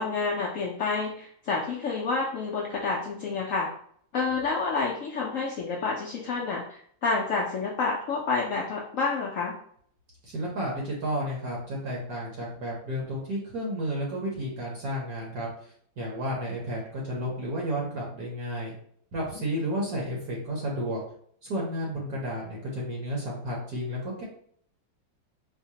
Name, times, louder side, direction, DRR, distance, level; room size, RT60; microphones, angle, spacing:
voice 1, 0.0-3.7 4.1-9.5 19.2-19.5, left 4 dB, 80° left, -3 dB, 0.7 m, -29 dB
voice 2, 10.2-15.5 16.0-18.7 19.1-21.0 21.4-24.2, equal, 60° right, -3 dB, 1.2 m, -32 dB
4.6 x 2.1 x 2.8 m, 0.62 s
omnidirectional pair, 2.0 m